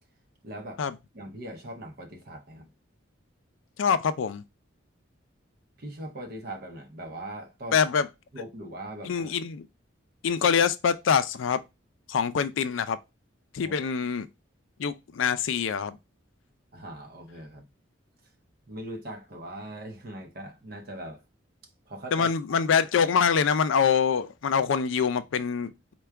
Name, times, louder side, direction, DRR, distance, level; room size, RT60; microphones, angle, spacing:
voice 1, 0.4-0.8 1.1-2.7 5.8-7.8 8.3-9.3 13.6-13.8 16.7-17.6 18.7-21.2 21.9-22.3, right 1 dB, 50° right, 0.6 m, -40 dB
voice 2, 3.8-4.4 7.7-8.1 9.0-9.7 10.2-11.6 12.1-13.0 13.5-14.3 14.8-16.0 22.1-25.9, left 6 dB, 75° left, 0.4 m, -25 dB
4.5 x 2.2 x 3.3 m
head